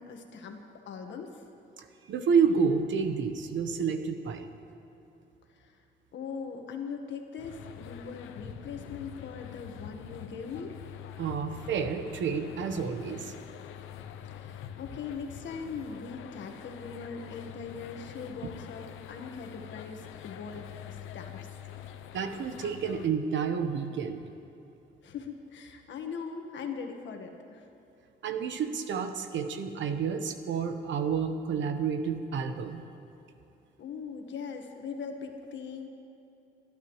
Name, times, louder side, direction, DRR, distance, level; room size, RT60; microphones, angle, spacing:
voice 1, 0.0-1.4 5.5-5.8 6.1-10.8 14.2-21.5 25.0-27.7 33.8-35.9, left 5 dB, 70° left, 4 dB, 1.5 m, -41 dB
voice 2, 1.8-4.5 11.2-13.3 22.1-24.3 28.2-32.8, right 6 dB, 70° right, 7 dB, 1.1 m, -30 dB
sound 1, 7.4-23.1, left 9 dB, 85° left, 0.7 m, -45 dB
27.5 x 11.5 x 3.2 m, 2.9 s
cardioid pair, 90°, 20 cm